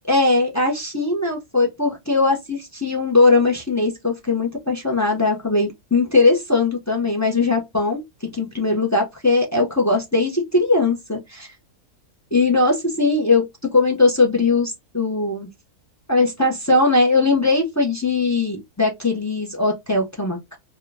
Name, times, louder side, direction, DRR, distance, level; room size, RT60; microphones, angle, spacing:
voice 1, 0.1-11.5 12.3-15.5 16.1-20.6, left 3 dB, 20° left, 0.5 m, -20 dB
3.6 x 2.2 x 3.4 m
omnidirectional pair, 1.6 m